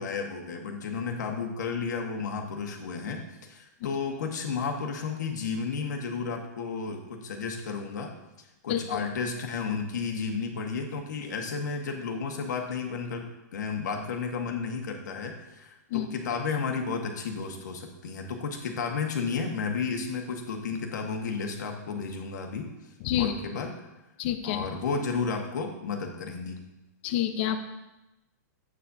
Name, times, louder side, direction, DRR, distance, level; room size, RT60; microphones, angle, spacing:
voice 1, 0.0-8.1 8.4-22.7 23.1-23.7 24.4-26.6, left 5 dB, 85° left, 3 dB, 1.6 m, -32 dB
voice 2, 24.2-24.7 27.0-27.6, left 12 dB, 40° left, 8 dB, 0.8 m, -27 dB
9.6 x 8.7 x 2.8 m, 0.97 s
supercardioid pair, 165°, 9 cm